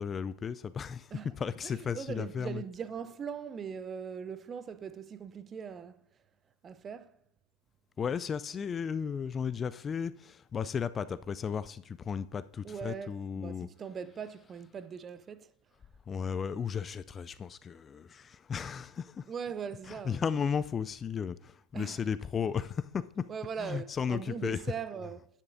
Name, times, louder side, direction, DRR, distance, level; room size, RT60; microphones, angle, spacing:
voice 1, 0.0-1.1 1.4-2.6 8.0-13.7 16.1-19.2 19.9-23.2 23.6-24.6, left 7 dB, 25° left, 0.3 m, -34 dB
voice 2, 1.6-6.0 6.6-7.2 12.6-15.5 19.3-20.3 21.7-22.0 23.3-25.3, right 7 dB, 30° right, 0.6 m, -40 dB
10.5 x 10.0 x 2.6 m
figure-of-eight pair, 85°, 0 cm